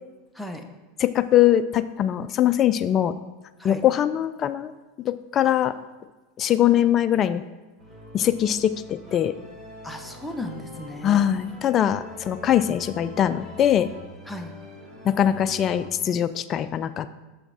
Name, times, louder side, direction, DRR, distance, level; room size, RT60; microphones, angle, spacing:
voice 1, 1.0-3.2 3.6-4.7 5.0-5.7 6.4-7.4 8.1-9.3 11.0-13.9 15.0-17.1, left 11 dB, 35° left, 12 dB, 0.4 m, -22 dB
sound 1, 7.8-15.9, left 1 dB, 25° right, 2.2 m, -44 dB
voice 2, 9.8-11.2 14.3-14.5, left 1 dB, ahead, 4 dB, 0.9 m, -35 dB
7.1 x 5.8 x 4.1 m, 1.2 s
hypercardioid pair, 95°, 0 cm